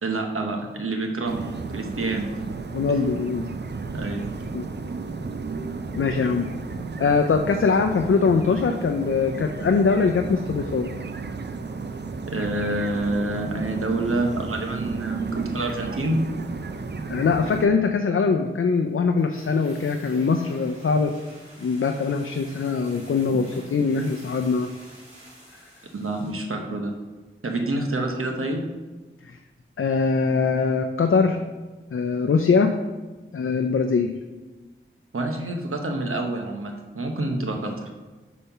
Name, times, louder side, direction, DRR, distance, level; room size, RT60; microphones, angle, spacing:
voice 1, 0.0-2.3 3.9-4.3 12.3-16.2 25.9-26.9 27.4-28.7 35.1-37.9, right 2 dB, 90° right, 3 dB, 0.9 m, -27 dB
sound 1, 1.3-17.7, right 4 dB, 55° right, 0.5 m, -33 dB
voice 2, 2.7-3.5 4.5-4.7 5.9-6.5 7.0-10.9 17.1-21.1 21.6-24.7 29.8-31.4 31.9-32.7 33.3-34.1, left 5 dB, 70° left, 5 dB, 0.4 m, -22 dB
sound 2, 19.2-26.5 26.7-26.8, right 1 dB, 35° right, 2.2 m, -49 dB
5.4 x 4.2 x 5.6 m, 1.2 s
wide cardioid pair, 60°, 21 cm